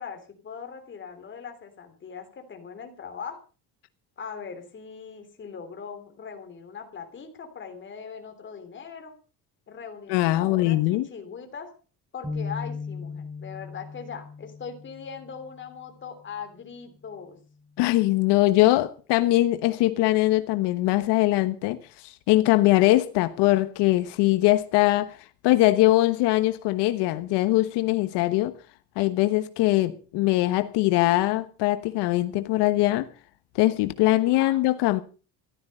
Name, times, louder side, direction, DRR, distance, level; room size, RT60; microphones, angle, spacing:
voice 1, 0.0-3.4 4.2-9.1 9.7-11.7 12.1-17.4 34.2-34.6, left 6 dB, 30° left, 3.3 m, -40 dB
voice 2, 10.1-11.1 17.8-21.8 22.3-25.1 25.4-28.5 29.0-33.1 33.5-35.0, left 17 dB, 90° left, 1.2 m, -22 dB
sound 1, 12.2-15.8, left 4 dB, ahead, 5.4 m, -37 dB
15.0 x 12.5 x 5.5 m
cardioid pair, 165°, 40 cm